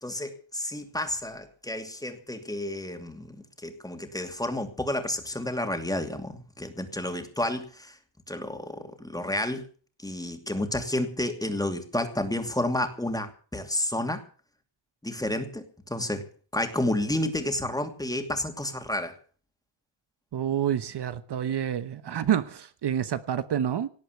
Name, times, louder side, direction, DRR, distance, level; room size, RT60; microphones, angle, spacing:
voice 1, 0.0-8.0 8.3-9.6 10.0-14.2 15.0-16.2 16.5-19.1, left 1 dB, 10° left, 2.6 m, -31 dB
voice 2, 20.3-23.9, right 9 dB, 60° right, 1.2 m, -28 dB
18.5 x 8.2 x 8.2 m
wide cardioid pair, 125°, 46 cm